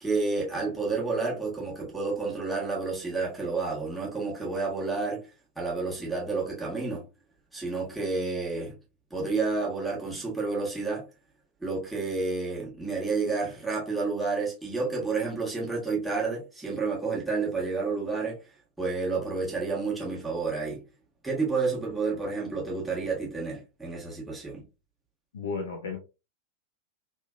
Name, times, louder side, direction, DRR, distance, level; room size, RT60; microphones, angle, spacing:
voice 1, 0.0-5.3 5.6-7.0 7.5-8.8 9.1-11.1 11.6-18.4 18.8-20.8 21.2-24.6, right 4 dB, 5° right, 1.2 m, -30 dB
voice 2, 25.3-26.0, left 4 dB, 65° left, 0.6 m, -33 dB
3.2 x 2.2 x 2.2 m
figure-of-eight pair, 90°, 0 cm